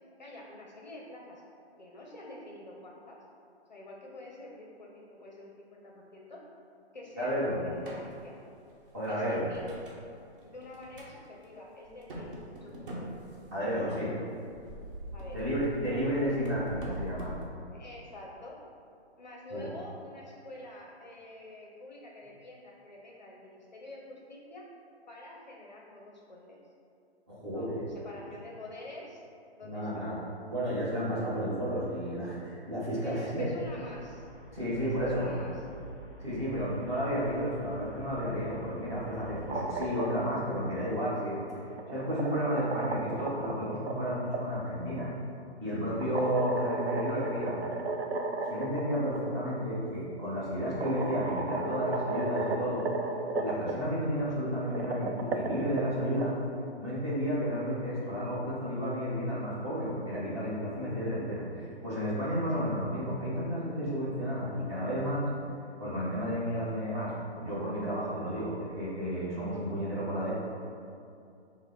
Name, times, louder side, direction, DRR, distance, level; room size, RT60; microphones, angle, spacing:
voice 1, 0.2-1.4 1.8-3.2 3.7-6.4 6.9-8.3 9.1-9.7 10.5-13.0 15.1-15.5 15.9-16.3 17.7-18.6 19.2-24.7 25.1-26.6 27.5-29.2 29.6-30.1 33.0-34.3 34.8-35.6, left 1 dB, 45° left, -2 dB, 0.5 m, -47 dB
voice 2, 7.2-7.6 8.9-9.4 13.5-14.2 15.3-17.3 19.5-19.7 27.3-27.9 29.6-30.2 30.5-33.5 34.5-35.3 36.2-45.1 45.6-47.6 48.5-52.9 53.4-56.4 56.8-65.3 65.8-70.3, equal, 25° right, -10 dB, 1.1 m, -32 dB
sound 1, 7.7-8.1 8.7-10.0 10.4-11.1 11.4-11.5 11.8-13.8 14.4-17.5, right 1 dB, 50° right, 1.1 m, -43 dB
Traffic noise roadway noise, 33.6-40.1, equal, ahead, 1.0 m, -49 dB
sound 2, 39.3-40.4 41.6-44.4 46.0-48.8 49.1-49.2 50.3-50.4 50.8-53.7 54.6-56.2, right 3 dB, 70° right, 0.5 m, -34 dB
6.0 x 2.1 x 3.8 m, 2.5 s
hypercardioid pair, 170°, 33 cm